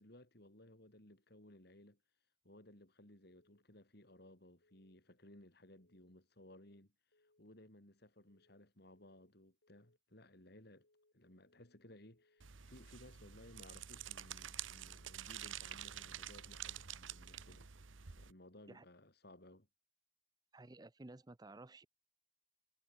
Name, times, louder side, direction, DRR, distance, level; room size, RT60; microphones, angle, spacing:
voice 1, 0.0-2.0 2.4-6.9 7.4-10.9 11.1-17.7 18.2-19.7, left 1 dB, 55° left, 4.0 m, -60 dB
sound 1, 3.3-3.7 4.0-4.4 4.6-5.0 5.8-6.2 6.5-6.9 7.1-7.5 8.3-8.7 9.0-9.4 9.6-10.0 10.8-11.2 11.5-11.9 12.1-12.5 13.3-13.7 14.0-14.4 14.6-15.0 15.8-16.2 16.5-16.9 17.1-17.5, left 2 dB, 80° left, 4.8 m, -76 dB
sound 2, 12.4-18.3, right 10 dB, 85° right, 1.1 m, -49 dB
voice 2, 20.5-21.9, right 2 dB, 20° right, 0.6 m, -54 dB
head